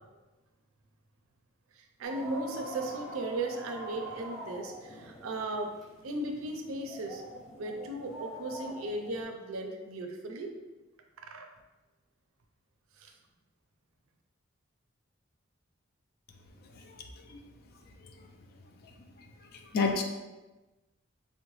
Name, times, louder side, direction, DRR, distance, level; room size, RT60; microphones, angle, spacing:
voice 1, 1.8-5.7 6.0-7.2 7.6-10.5 11.2-11.5 13.0-13.1, right 2 dB, 85° right, 4 dB, 0.4 m, -36 dB
sound 1, 2.0-9.2, equal, ahead, 0.5 m, -45 dB
voice 2, 19.5-20.0, left 4 dB, 45° left, 4 dB, 0.4 m, -29 dB
3.7 x 2.1 x 3.0 m, 1.1 s
head